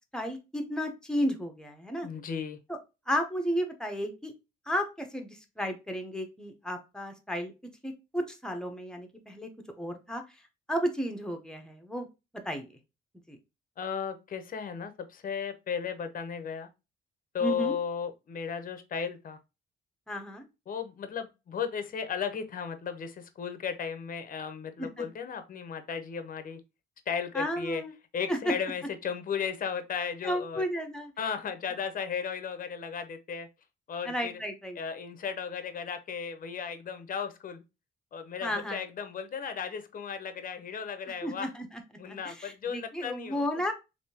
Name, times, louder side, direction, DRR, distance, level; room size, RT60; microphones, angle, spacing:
voice 1, 0.1-2.1 2.7-2.8 3.1-4.3 4.7-7.5 7.8-9.5 9.8-10.2 10.7-12.1 12.4-12.7 13.3-13.4 17.4-17.7 20.1-20.4 24.8-25.0 27.3-27.9 28.3-28.5 30.2-31.1 34.0-34.8 38.4-38.8 41.2-41.8 42.1-43.7, equal, 5° left, 0.8 m, -33 dB
voice 2, 2.0-2.6 13.8-16.7 17.3-19.4 20.7-26.6 27.1-27.8 28.1-30.6 31.2-33.5 33.9-34.4 34.8-37.6 38.1-41.5 42.0-43.4, left 7 dB, 45° left, 0.6 m, -35 dB
3.5 x 2.6 x 2.7 m
cardioid pair, 90°, 20 cm